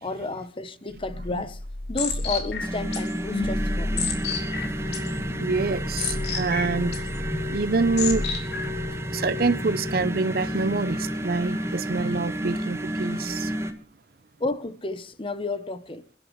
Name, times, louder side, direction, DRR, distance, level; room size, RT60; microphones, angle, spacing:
voice 1, 0.0-1.6 1.9-4.1 14.4-16.0, left 3 dB, 30° left, 0.9 m, -31 dB
sound 1, 0.9-8.9, left 3 dB, 70° left, 3.6 m, -31 dB
sound 2, 2.6-13.7, equal, 15° right, 1.5 m, -30 dB
voice 2, 5.4-8.3 9.1-13.5, right 3 dB, 60° right, 0.7 m, -26 dB
28.5 x 11.5 x 3.1 m
head